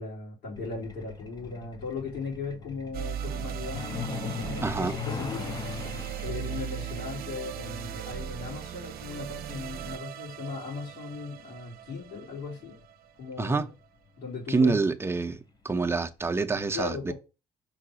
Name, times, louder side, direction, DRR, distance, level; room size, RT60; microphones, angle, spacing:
voice 1, 0.0-5.6 6.2-12.8 13.2-13.7 14.2-14.8 16.7-17.1, left 4 dB, 75° left, 4.2 m, -38 dB
Truck, 0.6-12.9 14.1-14.3 14.6-14.8 15.2-15.5 15.8-15.9 16.4-16.5, left 5 dB, 25° left, 0.7 m, -40 dB
sound 1, 2.9-13.3, right 10 dB, 65° right, 0.8 m, -38 dB
voice 2, 4.6-4.9 13.4-13.7 14.5-15.4 15.6-17.1, right 4 dB, 15° right, 0.6 m, -26 dB
5.6 x 3.8 x 5.0 m
cardioid pair, 110°, 17 cm